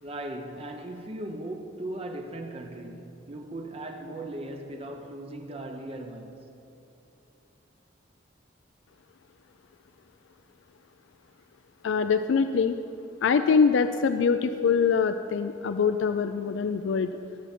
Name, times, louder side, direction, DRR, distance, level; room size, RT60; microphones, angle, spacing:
voice 1, 0.0-6.4, right 1 dB, 30° right, 0.6 m, -38 dB
voice 2, 11.8-12.7 13.2-17.1, left 5 dB, 75° left, 0.4 m, -24 dB
19.0 x 7.0 x 4.3 m
head